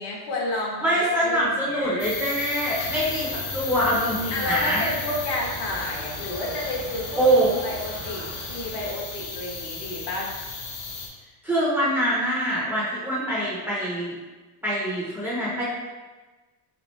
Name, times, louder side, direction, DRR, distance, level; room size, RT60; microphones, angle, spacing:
voice 1, 0.0-2.1 4.3-7.2 7.6-10.3, left 2 dB, 60° left, -3 dB, 1.1 m, -31 dB
voice 2, 0.8-3.3 3.5-4.8 7.2-7.5 11.4-14.1 14.6-15.6, right 1 dB, 5° right, -7 dB, 0.7 m, -24 dB
sound 1, 2.0-11.1, left 4 dB, 35° left, 0.6 m, -35 dB
Bowed string instrument, 2.3-6.7, left 8 dB, 85° left, 1.3 m, -44 dB
sound 2, 2.8-8.9, right 2 dB, 50° right, 1.2 m, -40 dB
3.4 x 3.4 x 3.2 m, 1.2 s
cardioid pair, 150°, 46 cm